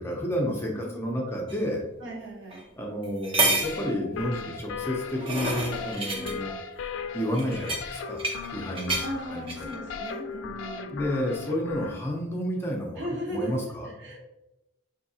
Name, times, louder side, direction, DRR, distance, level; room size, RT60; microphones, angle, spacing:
voice 1, 0.0-1.8 2.8-6.6 7.1-9.7 10.9-13.9, equal, 15° left, -2 dB, 0.6 m, -31 dB
voice 2, 0.7-1.2 2.0-2.6 6.1-6.4 9.0-11.0 13.0-13.5 13.8-14.2, right 1 dB, 70° right, -4 dB, 1.1 m, -37 dB
sound 1, 1.5-1.6 2.5-2.6 3.0-3.8 4.8-6.3 7.3-8.5 8.7-9.1 9.5-9.7, right 2 dB, 30° right, 0.6 m, -29 dB
sound 2, 3.6-12.0, left 5 dB, 80° left, 0.3 m, -37 dB
4.4 x 2.7 x 2.7 m, 0.92 s
head